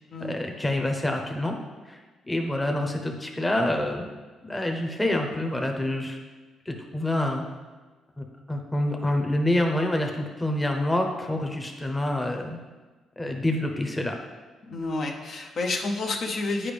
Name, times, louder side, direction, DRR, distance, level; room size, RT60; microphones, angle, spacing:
voice 1, 0.2-1.5 1.9-2.0 2.3-4.0 4.4-6.2 6.7-7.4 8.2-12.6 13.2-14.2, left 1 dB, 15° left, 3 dB, 0.8 m, -27 dB
voice 2, 14.6-16.7, left 2 dB, 60° left, 1 dB, 0.8 m, -29 dB
8.6 x 4.8 x 3.4 m, 1.3 s
cardioid pair, 90°, 0 cm